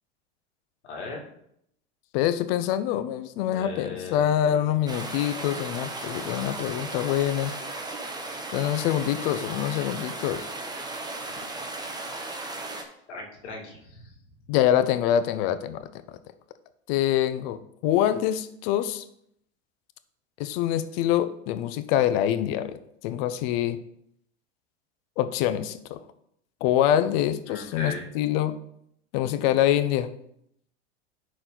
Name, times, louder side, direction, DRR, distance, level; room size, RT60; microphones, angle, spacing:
voice 1, 0.8-1.3 3.5-4.7 13.1-14.2 27.5-28.1, left 3 dB, 80° left, -1 dB, 2.5 m, -38 dB
voice 2, 2.1-7.5 8.5-10.5 11.4-11.5 14.5-15.9 16.9-19.0 20.4-22.8 23.0-23.8 25.2-26.0 26.6-28.6 29.1-30.1, left 11 dB, 60° left, 11 dB, 0.8 m, -25 dB
sound 1, 4.9-12.8, right 2 dB, 10° right, 1.2 m, -36 dB
11.0 x 4.4 x 4.0 m, 0.72 s
hypercardioid pair, 100°, 34 cm